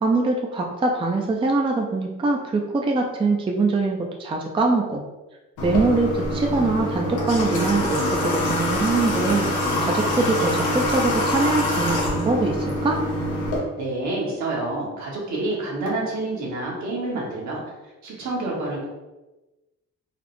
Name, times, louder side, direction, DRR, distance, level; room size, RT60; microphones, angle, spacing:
voice 1, 0.0-5.0 5.6-9.5 9.8-13.0, right 3 dB, 20° right, 1 dB, 0.4 m, -23 dB
Water / Water tap faucet, 5.6-13.6, left 1 dB, 90° left, 0.9 m, -24 dB
voice 2, 13.8-17.6 18.0-18.9, right 2 dB, 70° right, -4 dB, 1.3 m, -28 dB
4.0 x 2.0 x 3.0 m, 1.1 s
cardioid pair, 90°, 30 cm